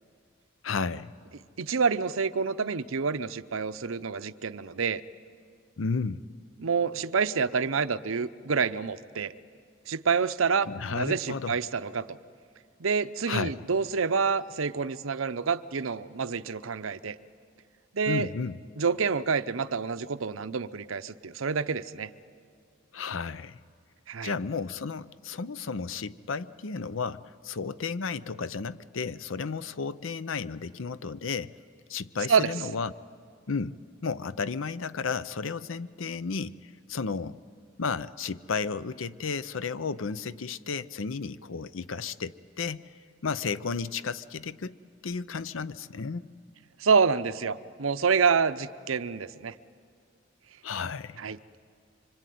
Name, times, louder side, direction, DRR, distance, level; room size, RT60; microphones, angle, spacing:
voice 1, 0.6-1.1 5.8-6.2 10.7-11.6 13.3-13.5 18.1-18.6 22.9-23.6 24.2-31.5 31.9-32.9 33.5-33.8 34.0-36.5 36.9-37.4 37.8-42.8 43.2-44.8 45.0-46.3 50.6-51.2, left 5 dB, 80° left, 16 dB, 0.6 m, -33 dB
voice 2, 1.6-5.0 6.6-9.3 9.9-12.2 12.8-17.2 17.9-18.3 18.8-22.1 24.1-24.3 32.3-32.5 46.8-49.5 51.2-51.4, right 5 dB, 90° right, 12 dB, 0.7 m, -27 dB
25.0 x 25.0 x 9.4 m, 2.2 s
head